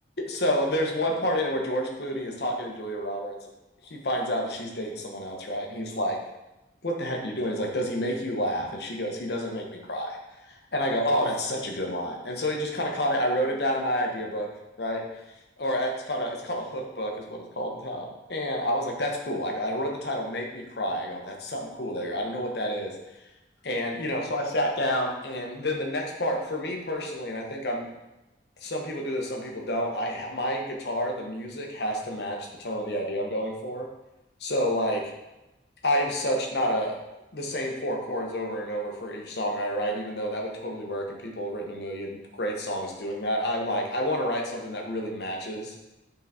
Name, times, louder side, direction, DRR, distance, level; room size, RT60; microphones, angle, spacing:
voice 1, 0.2-3.4 3.8-6.2 6.8-10.2 10.5-14.5 14.8-15.0 15.6-22.9 23.6-27.9 28.6-33.9 34.4-35.1 35.8-37.0 37.3-45.7, equal, 70° left, 1 dB, 1.1 m, -29 dB
6.7 x 4.0 x 4.2 m, 1.0 s
head